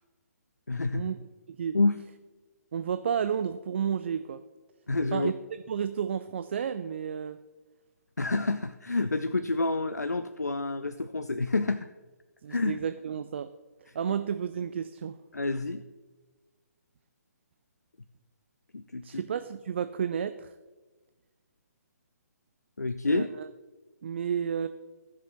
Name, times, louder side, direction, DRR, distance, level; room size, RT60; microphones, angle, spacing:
voice 1, 0.7-1.0 1.7-2.0 4.9-5.3 8.2-11.9 12.5-12.8 15.3-15.8 18.7-19.2 22.8-23.3, left 3 dB, 80° left, 11 dB, 0.4 m, -28 dB
voice 2, 2.7-4.4 5.1-5.3 5.7-7.4 12.4-13.5 13.9-15.2 19.0-20.5 23.1-23.5 24.0-24.7, right 7 dB, 45° right, 11 dB, 0.3 m, -31 dB
17.5 x 6.2 x 3.0 m, 1.3 s
figure-of-eight pair, 135°, 9 cm